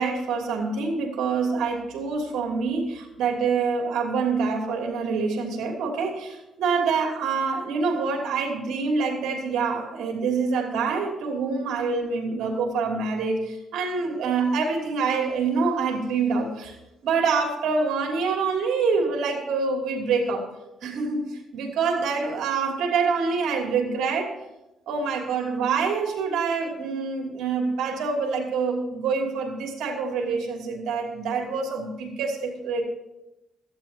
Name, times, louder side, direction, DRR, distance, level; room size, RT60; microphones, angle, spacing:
voice 1, 0.0-16.8 17.0-20.5 20.8-24.3 24.9-32.8, right 4 dB, 80° right, 1 dB, 3.1 m, -26 dB
16.5 x 14.0 x 3.0 m, 0.94 s
cardioid pair, 90°, 0 cm